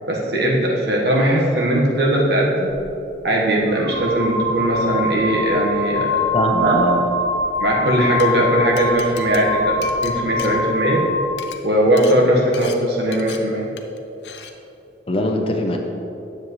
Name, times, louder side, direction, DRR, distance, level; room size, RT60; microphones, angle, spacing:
voice 1, 0.1-2.7 3.2-6.2 6.6-6.8 7.6-11.0 11.6-13.7, right 1 dB, 60° right, -2 dB, 1.4 m, -19 dB
sound 1, 2.7-2.8 3.7-11.4, left 1 dB, 75° right, 1.2 m, -24 dB
voice 2, 6.3-7.0 15.1-15.8, left 1 dB, 30° left, 2 dB, 0.6 m, -21 dB
Glass, 8.0-8.3 8.8-11.0 11.3-11.6 12.0-12.2 12.5-12.8 13.1-13.4 13.8-14.0 14.2-14.5, left 8 dB, 65° left, 0.6 m, -37 dB
9.9 x 7.4 x 3.2 m, 2.9 s
head